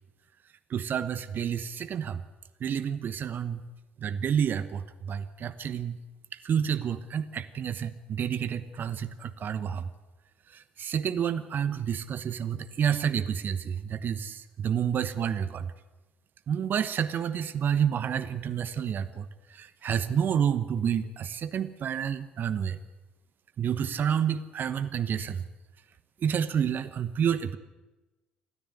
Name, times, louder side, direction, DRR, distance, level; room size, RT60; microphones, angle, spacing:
voice 1, 0.7-2.2 2.6-3.7 4.0-6.0 6.3-9.9 10.5-15.7 16.5-22.8 23.6-25.4 26.2-27.6, right 8 dB, 45° right, 13 dB, 1.1 m, -29 dB
26.5 x 14.0 x 8.2 m, 1.1 s
figure-of-eight pair, 50°, 5 cm